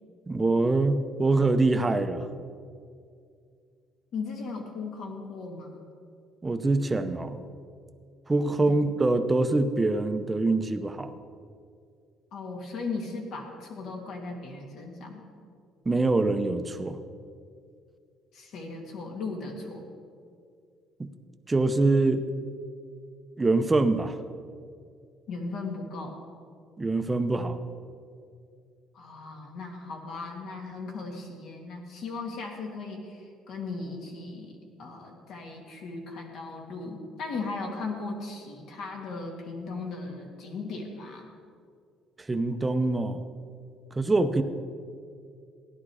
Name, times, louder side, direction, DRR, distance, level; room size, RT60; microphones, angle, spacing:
voice 1, 0.3-2.3 6.4-7.4 8.3-11.1 15.8-17.0 21.0-21.1 21.5-22.2 23.4-24.2 26.8-27.6 42.3-43.2 43.9-44.4, right 2 dB, 15° right, 8 dB, 0.8 m, -24 dB
voice 2, 4.1-5.8 8.7-8.8 12.3-15.3 18.3-19.8 25.3-26.2 28.9-34.5 34.8-41.3, left 3 dB, 65° left, 1 dB, 2.5 m, -37 dB
16.0 x 11.0 x 4.9 m, 2.3 s
cardioid pair, 135°, 0 cm